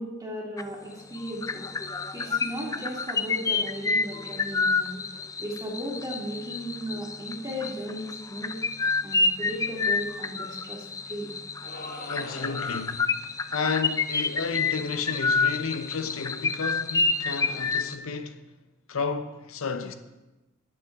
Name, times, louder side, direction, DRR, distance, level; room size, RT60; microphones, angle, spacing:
voice 1, 0.0-1.7 2.1-5.0 5.4-8.5 9.0-11.3, equal, 20° right, 2.6 m, -36 dB
sound 1, 0.6-0.9 1.1-17.9, left 4 dB, 15° left, 0.3 m, -29 dB
sound 2, 11.6-13.0, left 2 dB, 50° left, 1.6 m, -41 dB
voice 2, 11.7-13.1 13.5-18.4 18.9-19.9, left 5 dB, 85° left, 0.8 m, -32 dB
19.0 x 7.1 x 3.6 m
head